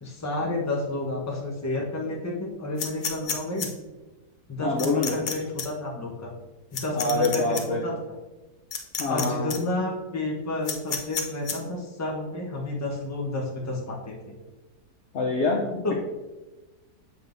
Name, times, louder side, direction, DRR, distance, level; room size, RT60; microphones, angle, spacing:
voice 1, 0.0-3.7 4.5-6.3 6.7-8.0 9.0-14.3 15.8-15.9, left 2 dB, 15° left, -2 dB, 0.7 m, -30 dB
sound 1, 2.8-3.7 4.8-5.3 5.6-5.7 6.7-7.6 8.7-9.2 9.5-9.6 10.6-11.5, left 6 dB, 85° left, 0.4 m, -30 dB
voice 2, 4.6-5.2 6.9-7.8 9.0-9.5 15.1-15.9, left 3 dB, 60° left, 1 dB, 0.7 m, -25 dB
7.6 x 5.5 x 2.6 m, 1.1 s
omnidirectional pair, 1.8 m